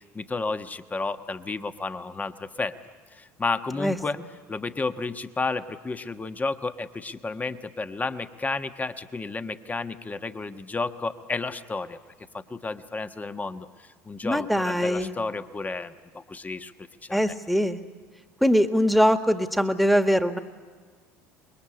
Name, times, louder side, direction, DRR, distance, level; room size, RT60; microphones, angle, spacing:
voice 1, 0.1-2.7 3.1-4.2 4.5-12.0 12.3-16.7 17.0-17.3, left 3 dB, 20° left, 9 dB, 1.3 m, -32 dB
voice 2, 14.2-15.1 17.1-17.8 18.4-20.4, equal, ahead, 7 dB, 1.8 m, -22 dB
26.0 x 22.0 x 9.9 m, 1.5 s
hypercardioid pair, 70°, 8 cm